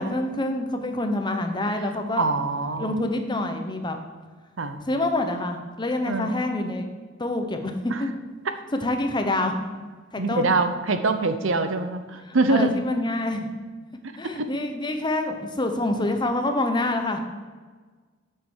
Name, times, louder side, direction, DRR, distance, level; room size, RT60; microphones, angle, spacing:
voice 1, 0.0-2.3 2.8-4.0 4.9-6.8 7.2-8.1 8.8-9.5 10.1-10.5 12.3-13.5 14.2-17.2, left 2 dB, 25° left, 5 dB, 1.0 m, -26 dB
voice 2, 2.2-2.9 4.6-4.8 6.1-6.3 7.9-8.0 10.2-12.7 14.4-14.5, right 3 dB, 75° right, 9 dB, 0.8 m, -24 dB
8.7 x 6.8 x 6.3 m, 1.4 s
head